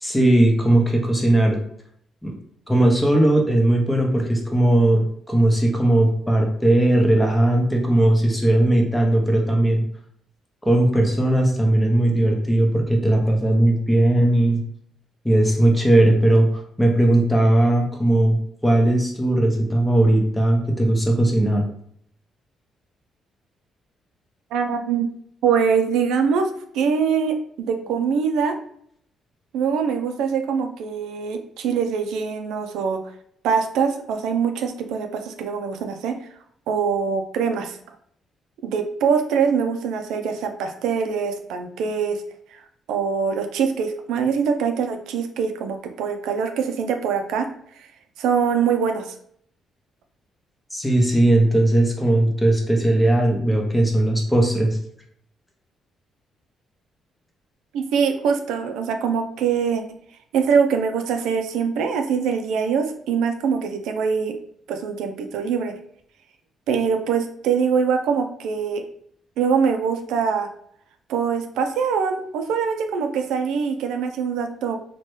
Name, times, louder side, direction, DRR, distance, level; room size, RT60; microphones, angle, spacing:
voice 1, 0.0-1.6 2.2-2.3 2.7-9.8 10.7-14.6 15.2-21.6 50.7-54.8, right 1 dB, 10° left, 1 dB, 0.8 m, -18 dB
voice 2, 24.5-25.1 25.4-26.5 26.7-27.4 27.7-28.6 29.5-33.0 33.4-36.2 36.7-37.8 38.6-42.2 42.5-42.6 42.9-47.5 48.2-49.1 57.7-59.8 60.3-64.3 64.7-65.7 66.7-68.8 69.4-70.5 71.1-74.7, right 6 dB, 90° right, 6 dB, 0.3 m, -23 dB
2.9 x 2.1 x 3.1 m, 0.66 s
cardioid pair, 90°, 0 cm